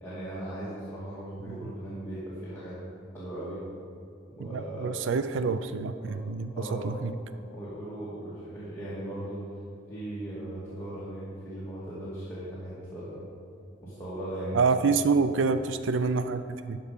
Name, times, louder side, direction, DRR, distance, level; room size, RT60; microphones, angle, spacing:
voice 1, 0.0-2.8 3.1-3.6 4.3-5.0 6.1-6.2 6.5-7.0 7.5-9.4 9.9-13.2 13.8-14.9, right 1 dB, 10° left, -11 dB, 1.9 m, -38 dB
voice 2, 4.4-7.1 14.5-16.8, right 4 dB, 70° right, 11 dB, 0.4 m, -27 dB
11.5 x 5.4 x 5.2 m, 2.5 s
head